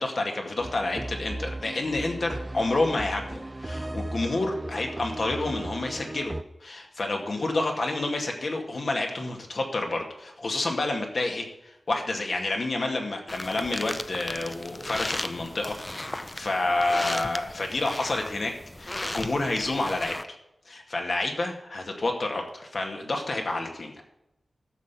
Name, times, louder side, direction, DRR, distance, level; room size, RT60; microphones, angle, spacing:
voice 1, 0.0-6.3 6.6-15.8 16.3-18.5 18.8-20.2 20.7-23.9, left 2 dB, 60° left, 2 dB, 2.1 m, -29 dB
sound 1, 0.6-6.4, right 1 dB, 25° right, 0.5 m, -36 dB
sound 2, 13.3-20.2, left 1 dB, 20° left, 0.6 m, -36 dB
13.0 x 6.0 x 7.0 m, 0.87 s
wide cardioid pair, 90°, 0 cm